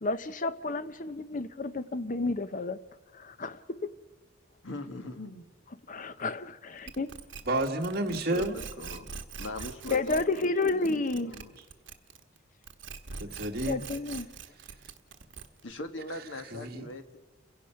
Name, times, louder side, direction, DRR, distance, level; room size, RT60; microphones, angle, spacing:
voice 1, 0.0-2.8 3.1-3.9 5.9-7.1 9.9-11.3 13.7-14.3, left 3 dB, 40° left, 0.7 m, -31 dB
voice 2, 4.6-5.5 8.0-9.1 9.4-11.5 15.6-17.2, left 1 dB, 75° left, 1.7 m, -41 dB
sound 1, 6.9-12.4 12.6-15.7, right 5 dB, 70° right, 1.2 m, -43 dB
voice 3, 7.5-8.6 13.2-13.8 16.5-16.9, right 1 dB, 50° right, 1.6 m, -30 dB
29.5 x 16.5 x 5.8 m
head